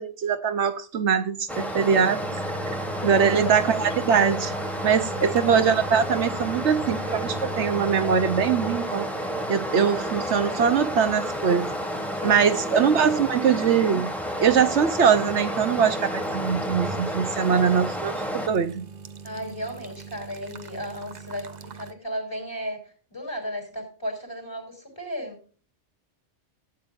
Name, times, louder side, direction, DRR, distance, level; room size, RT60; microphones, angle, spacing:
voice 1, 0.0-2.2 3.0-4.5 4.8-9.1 9.5-11.7 12.2-14.1 14.4-18.9, right 7 dB, 75° right, 1.1 m, -22 dB
Stream, 1.5-18.5, equal, ahead, 1.7 m, -31 dB
sound 1, 2.2-8.9 9.2-9.3 10.1-10.2 11.2-13.4 13.9-14.0 16.1-17.1 17.4-21.9, right 2 dB, 45° right, 0.8 m, -40 dB
voice 2, 3.1-3.6 5.2-5.7 12.2-13.2 19.2-25.4, equal, 20° left, 3.9 m, -35 dB
16.0 x 9.0 x 2.5 m
omnidirectional pair, 1.2 m